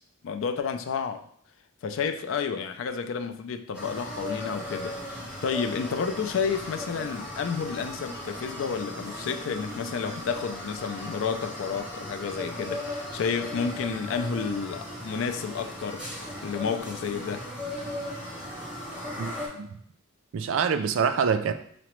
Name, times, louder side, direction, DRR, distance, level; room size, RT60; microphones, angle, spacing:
voice 1, 0.2-1.2 1.8-5.0 5.4-16.0 16.4-17.5, left 6 dB, 65° left, 0.3 m, -31 dB
sound 1, 3.7-19.5, left 1 dB, 5° right, 0.8 m, -37 dB
voice 2, 19.2-19.8 20.3-21.5, right 6 dB, 65° right, 0.3 m, -26 dB
5.7 x 2.0 x 3.0 m
head